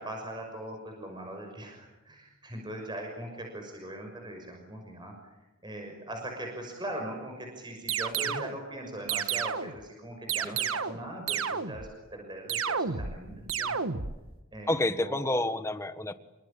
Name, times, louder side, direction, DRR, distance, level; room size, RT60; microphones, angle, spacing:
voice 1, 0.0-5.3 5.6-13.7 14.5-15.3, right 1 dB, 20° right, 2 dB, 6.3 m, -40 dB
sound 1, 7.9-8.6 9.1-9.8 10.3-11.0 11.3-11.9 12.5-13.2 13.5-14.2, right 7 dB, 80° right, 1.5 m, -31 dB
voice 2, 14.7-16.1, left 1 dB, 15° left, 11 dB, 1.4 m, -29 dB
27.5 x 25.0 x 8.8 m, 1.1 s
head